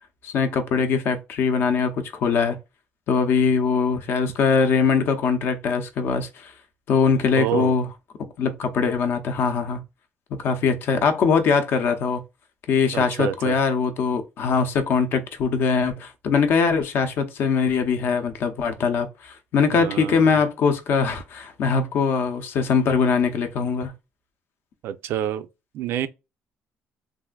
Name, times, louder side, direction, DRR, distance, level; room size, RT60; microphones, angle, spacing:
voice 1, 0.2-2.6 3.1-6.5 6.9-7.9 8.4-9.8 10.4-12.2 12.7-23.9, left 5 dB, 60° left, 0.6 m, -22 dB
voice 2, 7.4-7.7 12.9-13.6 19.7-20.4 24.8-25.5 25.7-26.1, right 10 dB, 75° right, 0.4 m, -27 dB
3.4 x 2.5 x 2.2 m
cardioid pair, 160°, 4 cm